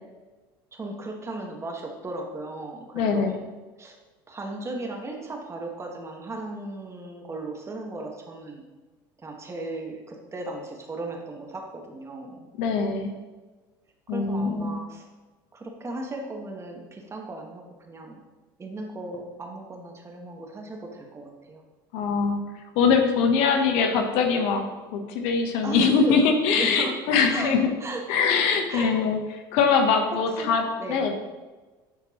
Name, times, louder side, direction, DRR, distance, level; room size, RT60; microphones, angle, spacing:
voice 1, 0.7-3.4 3.8-3.9 4.3-8.6 9.2-12.5 14.1-15.0 15.5-18.2 18.6-21.6 25.6-27.0 27.3-27.5 27.8-28.0 28.7-28.9 30.4-30.5 30.8-31.1, right 2 dB, 25° right, 1 dB, 1.6 m, -36 dB
voice 2, 2.9-3.4 12.6-13.1 14.1-14.7 21.9-22.4 22.7-27.7 28.1-29.2 29.5-31.1, left 5 dB, 75° left, 5 dB, 1.0 m, -22 dB
11.0 x 4.3 x 3.1 m, 1.2 s
supercardioid pair, 85°, 11 cm